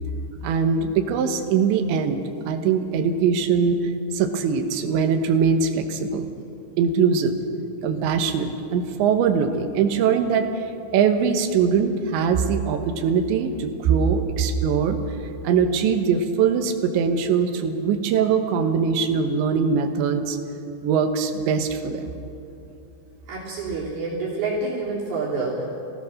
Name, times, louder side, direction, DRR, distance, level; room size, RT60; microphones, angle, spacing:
voice 1, 0.4-3.8 4.1-6.3 6.8-7.3 7.8-10.7 10.9-15.0 15.4-20.4 20.8-22.1, right 6 dB, 80° right, 6 dB, 3.5 m, -22 dB
voice 2, 23.3-25.7, right 3 dB, 60° right, -6 dB, 5.0 m, -27 dB
25.0 x 17.5 x 6.5 m, 2.7 s
omnidirectional pair, 5.2 m